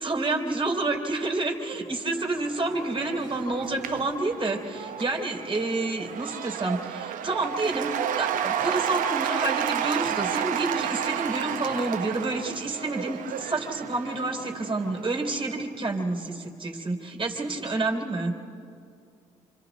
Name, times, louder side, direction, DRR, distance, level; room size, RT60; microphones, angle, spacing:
voice 1, 0.0-18.3, right 2 dB, 40° right, 2 dB, 3.4 m, -29 dB
Cheering / Applause / Crowd, 2.1-15.5, right 9 dB, 75° right, 0.8 m, -32 dB
27.0 x 26.0 x 4.1 m, 2.5 s
supercardioid pair, 60°, 14 cm